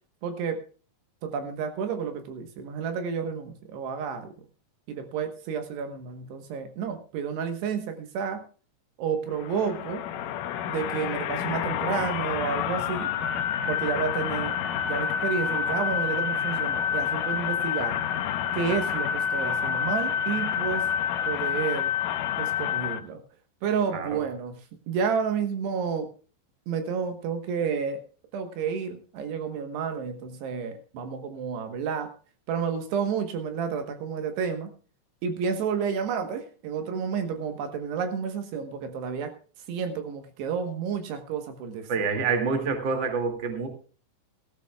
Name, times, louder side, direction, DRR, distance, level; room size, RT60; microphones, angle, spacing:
voice 1, 0.2-0.6 1.2-4.3 4.9-8.4 9.0-10.1 10.7-13.1 13.7-14.5 14.9-18.0 18.5-20.9 21.3-21.9 22.4-23.2 23.6-24.6 24.9-26.1 26.7-28.0 28.3-32.1 32.5-34.7 35.2-39.3 39.7-41.9, right 6 dB, 75° right, 7 dB, 3.2 m, -30 dB
sound 1, 9.3-23.0, left 8 dB, 80° left, 1.9 m, -28 dB
voice 2, 23.9-24.2 41.9-43.7, right 5 dB, 35° right, 4 dB, 2.3 m, -27 dB
17.0 x 15.0 x 2.3 m, 0.38 s
omnidirectional pair, 5.0 m